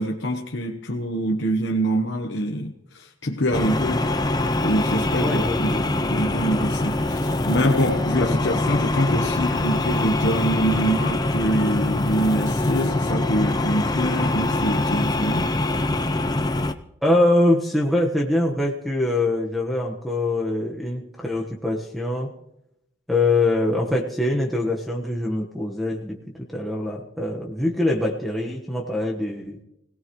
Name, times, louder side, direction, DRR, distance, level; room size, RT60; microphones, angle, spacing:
voice 1, 0.0-4.2 4.6-15.5, equal, 60° left, 1 dB, 1.1 m, -25 dB
sound 1, 3.5-16.7, left 2 dB, 20° left, 0.5 m, -24 dB
voice 2, 5.2-6.0 17.0-22.3 23.1-29.6, left 2 dB, ahead, -3 dB, 1.3 m, -23 dB
25.0 x 17.5 x 3.1 m, 0.82 s
head